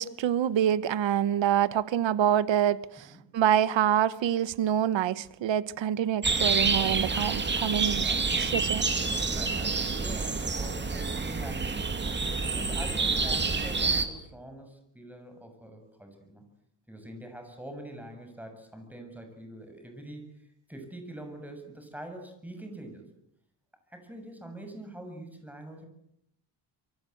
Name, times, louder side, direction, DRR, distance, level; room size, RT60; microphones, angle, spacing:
voice 1, 0.0-3.1 3.3-8.1 8.4-8.9, right 10 dB, 85° right, 1.2 m, -26 dB
sound 1, 6.2-14.1, right 4 dB, 25° right, 2.7 m, -28 dB
voice 2, 9.0-16.5 16.9-23.1 23.9-25.9, right 1 dB, 5° right, 6.9 m, -44 dB
26.0 x 23.5 x 8.0 m
wide cardioid pair, 155°, 43 cm